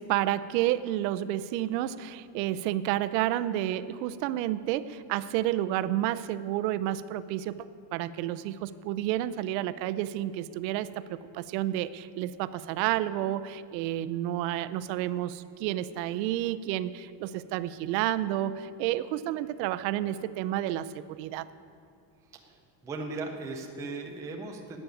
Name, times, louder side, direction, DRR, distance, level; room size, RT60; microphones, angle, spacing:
voice 1, 0.0-7.7 7.9-21.4, right 13 dB, 80° right, 13 dB, 0.7 m, -30 dB
voice 2, 22.3-24.8, right 3 dB, 5° right, 1 dB, 0.4 m, -38 dB
11.5 x 8.7 x 9.1 m, 2.4 s
cardioid pair, 180°, 49 cm